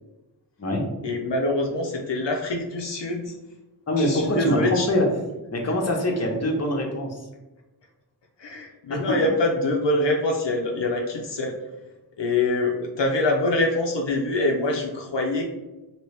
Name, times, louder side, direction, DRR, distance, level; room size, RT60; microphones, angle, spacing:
voice 1, 1.0-3.3 4.0-4.9 8.4-11.6 12.2-15.5, left 2 dB, 75° left, 1 dB, 0.6 m, -24 dB
voice 2, 3.9-5.0 5.5-7.2 8.9-9.2, left 1 dB, 35° left, 1 dB, 0.7 m, -24 dB
2.9 x 2.9 x 3.2 m, 1.1 s
wide cardioid pair, 55°, 44 cm